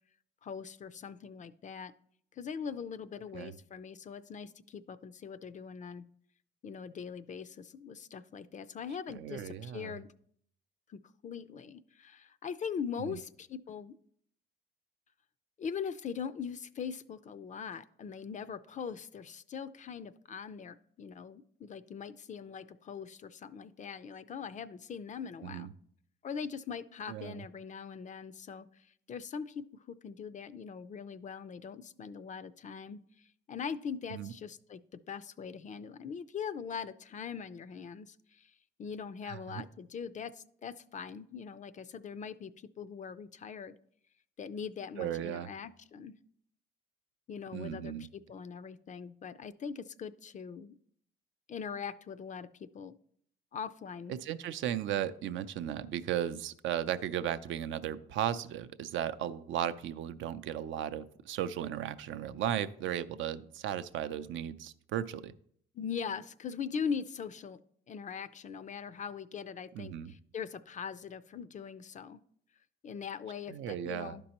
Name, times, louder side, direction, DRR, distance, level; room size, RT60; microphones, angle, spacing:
voice 1, 0.4-1.9 2.3-6.1 6.6-10.1 10.9-14.0 15.6-25.7 26.2-38.5 38.8-43.7 44.4-46.1 47.3-50.7 51.5-53.0 53.5-54.2 65.7-67.6 67.9-72.2 72.8-74.2, left 6 dB, 40° left, 15 dB, 0.4 m, -41 dB
voice 2, 9.1-10.0 13.1-13.2 25.4-25.7 27.1-27.4 34.1-34.3 39.3-39.6 45.0-45.5 47.5-48.1 54.1-65.3 69.7-70.1 73.5-74.1, right 10 dB, 75° right, 12 dB, 0.4 m, -36 dB
11.5 x 5.3 x 2.9 m, 0.65 s
cardioid pair, 90°, 20 cm